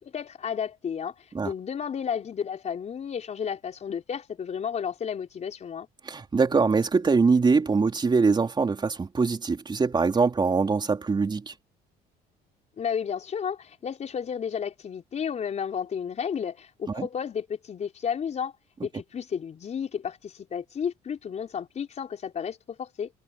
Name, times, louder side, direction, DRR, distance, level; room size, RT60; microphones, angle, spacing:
voice 1, 0.0-1.1 1.4-5.9 12.8-18.5 18.8-23.1, left 7 dB, 40° left, 4.8 m, -32 dB
voice 2, 6.0-11.5 16.9-17.1, right 4 dB, 25° right, 3.8 m, -23 dB
cardioid pair, 110°, 17 cm